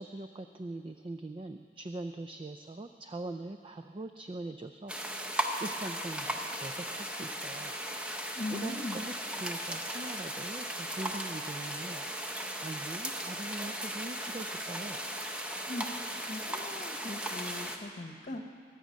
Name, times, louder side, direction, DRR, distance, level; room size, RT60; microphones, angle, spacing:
voice 1, 0.0-7.7 8.5-12.1 12.3-15.0, right 2 dB, 30° right, 7 dB, 0.4 m, -42 dB
sound 1, 4.9-17.8, equal, 5° right, 0.8 m, -37 dB
voice 2, 8.3-9.0 15.7-16.0 16.3-18.5, left 1 dB, 40° left, 6 dB, 1.0 m, -39 dB
22.0 x 8.3 x 6.3 m, 2.3 s
head